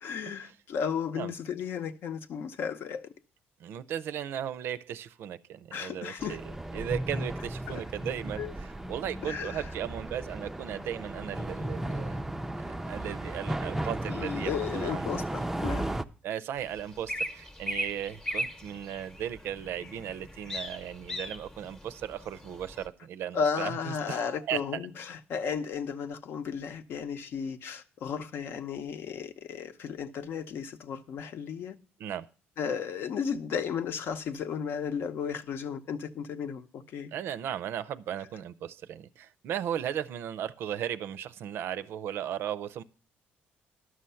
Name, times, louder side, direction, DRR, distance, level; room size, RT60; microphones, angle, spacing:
voice 1, 0.0-3.1 5.7-6.4 7.7-7.8 8.4-8.5 9.2-9.7 14.1-15.9 23.3-31.8 32.6-37.1, left 6 dB, 65° left, 0.7 m, -34 dB
voice 2, 3.6-12.2 12.6-15.3 16.2-24.6 32.0-32.3 37.1-42.8, right 10 dB, 70° right, 0.5 m, -36 dB
sound 1, 6.2-16.0, right 1 dB, 5° right, 0.4 m, -35 dB
sound 2, 16.6-22.9, equal, 15° left, 0.8 m, -39 dB
11.5 x 6.4 x 5.6 m
cardioid pair, 120°, 4 cm